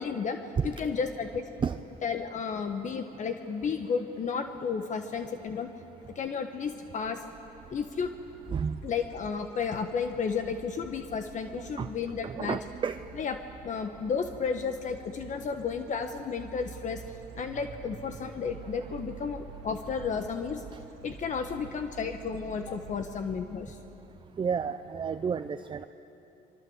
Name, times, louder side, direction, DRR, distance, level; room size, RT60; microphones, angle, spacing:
voice 1, 0.0-0.4 0.6-1.5 2.0-5.7 6.1-7.2 7.7-8.1 8.8-12.6 13.2-20.6 21.0-23.8, left 6 dB, 45° left, 7 dB, 1.4 m, -33 dB
sound 1, 6.7-24.2, right 6 dB, 80° right, 1.8 m, -49 dB
voice 2, 11.5-11.9 12.2-13.0 18.9-19.0 20.7-20.8 24.4-25.9, right 6 dB, 30° right, 10 dB, 0.6 m, -31 dB
27.0 x 24.0 x 8.1 m, 3.0 s
cardioid pair, 110°, 17 cm